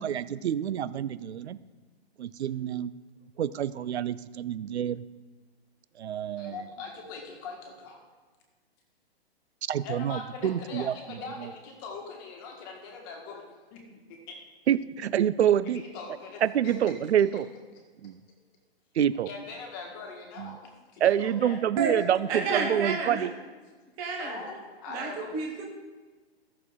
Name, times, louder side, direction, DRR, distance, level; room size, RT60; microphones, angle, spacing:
voice 1, 0.0-1.6 2.2-2.9 3.4-5.0 6.0-6.6 9.7-11.5 14.7-15.8 16.4-17.5 18.0-18.2 18.9-19.3 20.4-20.6 21.0-23.3, right 10 dB, 80° right, 16 dB, 0.6 m, -27 dB
voice 2, 6.4-8.0 9.8-13.4 13.7-13.8 14.1-14.3 15.7-16.8 19.3-20.6 20.9-21.6 24.2-25.3, left 4 dB, 20° left, 1 dB, 1.4 m, -41 dB
voice 3, 22.3-23.3 24.0-24.4 24.9-25.7, right 4 dB, 10° right, 0 dB, 0.6 m, -30 dB
14.0 x 6.6 x 3.6 m, 1.4 s
hypercardioid pair, 170°, 32 cm